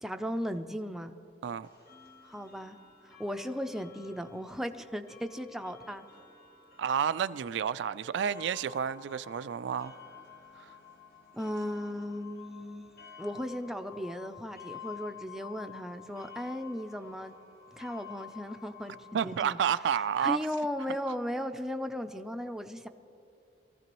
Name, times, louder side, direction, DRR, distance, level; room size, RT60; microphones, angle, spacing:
voice 1, 0.0-1.1 2.2-2.8 3.0-6.1 11.3-12.9 13.2-17.3 17.7-19.0 19.2-19.6 20.2-22.9, equal, ahead, 0.5 m, -36 dB
sound 1, 1.6-19.6, left 8 dB, 60° left, 1.2 m, -51 dB
voice 2, 6.8-10.0 10.6-10.7 19.1-20.4, right 8 dB, 90° right, 0.3 m, -30 dB
23.0 x 14.5 x 3.0 m
head